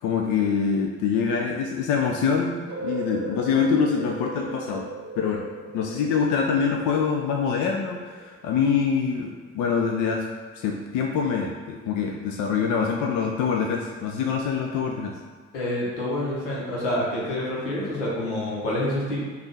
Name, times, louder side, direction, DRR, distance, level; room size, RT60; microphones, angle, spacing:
voice 1, 0.0-4.9 5.2-5.5 5.7-10.3 10.6-15.1, left 6 dB, 60° left, 1 dB, 0.5 m, -25 dB
sound 1, 2.7-8.6, right 2 dB, 50° right, 0.8 m, -37 dB
voice 2, 15.5-19.2, left 1 dB, 85° left, -5 dB, 0.9 m, -27 dB
5.2 x 2.4 x 3.2 m, 1.4 s
hypercardioid pair, 40°, 34 cm